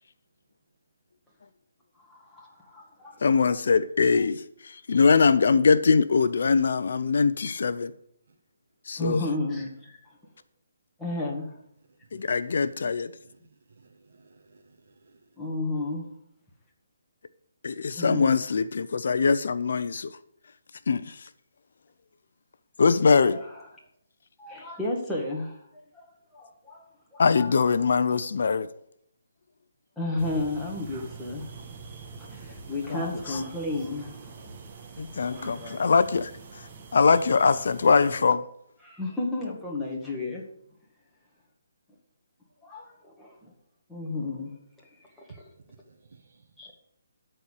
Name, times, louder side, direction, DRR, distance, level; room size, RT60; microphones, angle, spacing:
voice 1, 2.0-3.2 9.0-10.2 11.0-11.6 15.4-16.1 18.0-18.3 23.3-23.4 24.4-26.1 26.3-27.5 27.9-28.0 30.0-31.5 32.3-34.5 35.3-35.8 38.8-40.4 42.6-43.5 43.9-44.5 45.2-45.4 46.6-46.7, left 2 dB, 5° left, 1.9 m, -33 dB
voice 2, 3.2-7.9 8.9-9.2 12.1-13.1 17.6-20.2 20.9-21.3 22.8-23.4 27.2-28.7 32.9-33.0 33.3-33.4 35.0-38.5, left 5 dB, 65° left, 0.6 m, -22 dB
voice 3, 13.8-15.2 45.9-46.4, right 4 dB, 60° right, 1.5 m, -57 dB
sound 1, 30.2-38.2, right 4 dB, 30° right, 1.5 m, -45 dB
13.0 x 4.4 x 8.3 m
hypercardioid pair, 160°, 0 cm